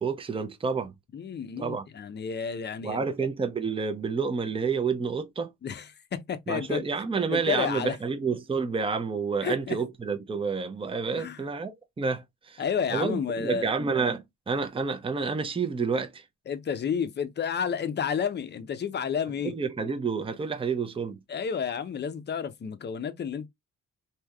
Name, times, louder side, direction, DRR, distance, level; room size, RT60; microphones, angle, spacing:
voice 1, 0.0-0.9 1.6-1.8 2.8-5.5 6.5-12.6 12.9-16.2 19.4-21.2, right 5 dB, 20° right, 0.6 m, -29 dB
voice 2, 1.1-3.0 5.6-6.8 7.3-8.0 9.4-9.8 11.2-11.4 12.6-13.7 16.5-19.5 21.3-23.5, left 7 dB, 35° left, 0.6 m, -31 dB
3.4 x 2.7 x 2.2 m
cardioid pair, 90°, 30 cm